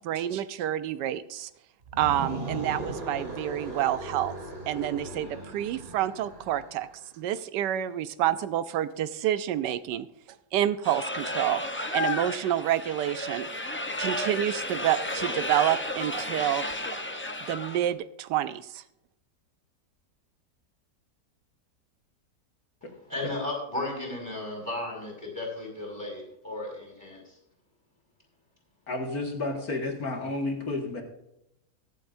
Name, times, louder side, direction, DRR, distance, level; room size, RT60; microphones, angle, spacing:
voice 1, 0.0-1.5 2.0-4.3 4.7-6.9 7.2-10.1 10.5-11.6 11.9-13.7 14.0-16.6 16.9-17.0 17.4-18.8, right 12 dB, 85° right, 13 dB, 1.2 m, -28 dB
sound 1, 1.8-6.9, right 1 dB, 35° right, 2.3 m, -38 dB
sound 2, 10.8-17.9, left 1 dB, 20° left, 0.3 m, -33 dB
voice 2, 23.1-27.3, left 2 dB, 10° right, -1 dB, 5.1 m, -35 dB
voice 3, 28.9-31.0, left 2 dB, 60° left, 1 dB, 2.4 m, -31 dB
23.0 x 7.7 x 2.6 m, 0.84 s
omnidirectional pair, 1.8 m